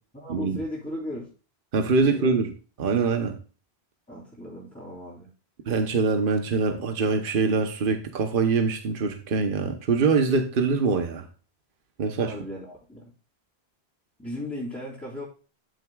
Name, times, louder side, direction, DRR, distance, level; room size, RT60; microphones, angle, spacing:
voice 1, 0.1-1.3 2.0-2.3 4.1-5.3 12.2-13.1 14.2-15.2, left 1 dB, 10° left, -7 dB, 3.2 m, -36 dB
voice 2, 1.7-2.5 2.8-3.4 5.7-11.2 12.0-12.3, right 4 dB, 55° right, 6 dB, 1.1 m, -24 dB
12.5 x 6.5 x 2.4 m, 0.36 s
omnidirectional pair, 1.1 m